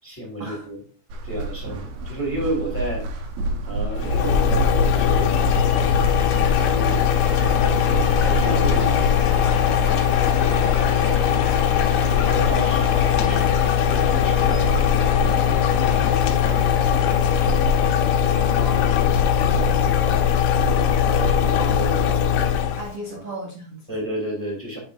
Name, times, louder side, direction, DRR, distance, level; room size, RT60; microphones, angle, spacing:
voice 1, 0.0-0.8 1.2-3.0 3.6-7.0 7.9-9.5 10.2-11.6 12.1-13.6 13.9-14.8 15.2-17.5 18.7-19.1 19.5-20.3 20.9-22.2 23.1-23.2 23.9-24.8, right 1 dB, 5° left, -3 dB, 2.5 m, -33 dB
Muffled Steps On Carpet, 1.1-9.1, right 2 dB, 70° right, 2.2 m, -31 dB
Cheering / Applause, 3.9-23.2, left 5 dB, 55° left, 2.9 m, -35 dB
sound 1, 4.0-22.9, left 8 dB, 80° left, 2.5 m, -20 dB
voice 2, 13.2-13.6 18.3-19.2 22.8-23.9, right 2 dB, 55° right, -2 dB, 1.8 m, -36 dB
8.9 x 5.8 x 2.5 m, 0.42 s
omnidirectional pair, 5.0 m